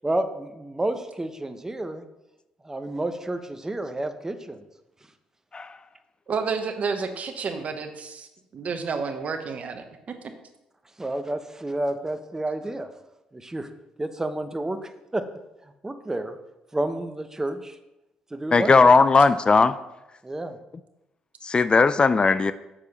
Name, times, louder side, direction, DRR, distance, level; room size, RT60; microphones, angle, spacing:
voice 1, 0.0-2.0 2.6-4.6 11.0-12.9 13.3-13.7 14.0-15.2 15.8-16.4 16.7-17.8 18.3-18.8 20.2-20.6, right 1 dB, 15° right, 9 dB, 1.0 m, -30 dB
voice 2, 6.3-9.8, right 5 dB, 50° right, 7 dB, 1.1 m, -30 dB
voice 3, 18.5-19.7 21.4-22.5, left 4 dB, 30° left, 13 dB, 0.4 m, -17 dB
7.5 x 6.6 x 4.1 m, 0.94 s
hypercardioid pair, 55°, 3 cm